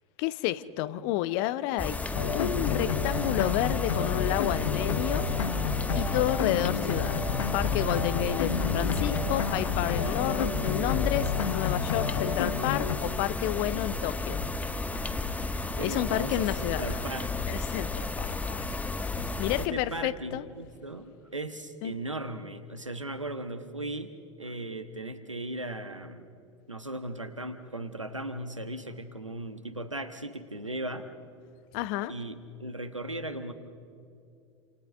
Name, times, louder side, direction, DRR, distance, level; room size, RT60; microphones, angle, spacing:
voice 1, 0.2-2.0 2.3-5.3 5.9-14.4 14.8-16.9 17.5-18.8 19.1-20.4 21.8-21.9 31.7-32.1, left 14 dB, 50° left, 16 dB, 0.8 m, -31 dB
sound 1, 1.8-19.7, left 3 dB, 10° left, 1.1 m, -32 dB
sound 2, 2.1-13.0, left 6 dB, 70° left, 1.2 m, -31 dB
voice 2, 15.8-17.5 19.6-26.3 26.7-31.1 32.1-33.5, right 1 dB, 90° right, 9 dB, 1.3 m, -37 dB
29.0 x 27.5 x 3.6 m, 2.6 s
figure-of-eight pair, 80°, 16 cm